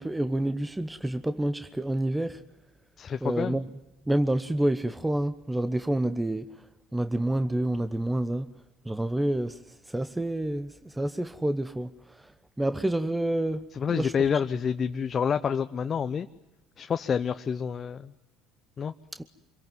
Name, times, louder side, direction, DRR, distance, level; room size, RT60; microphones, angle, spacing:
voice 1, 0.0-2.4 3.2-3.6 4.1-6.7 6.9-8.5 8.8-12.3 12.6-14.1 19.1-19.2, right 1 dB, 10° right, 1.1 m, -28 dB
voice 2, 3.0-3.6 13.7-16.3 16.8-18.1 18.8-18.9, left 7 dB, 40° left, 0.9 m, -28 dB
26.0 x 23.0 x 9.3 m
hypercardioid pair, 70°, 0 cm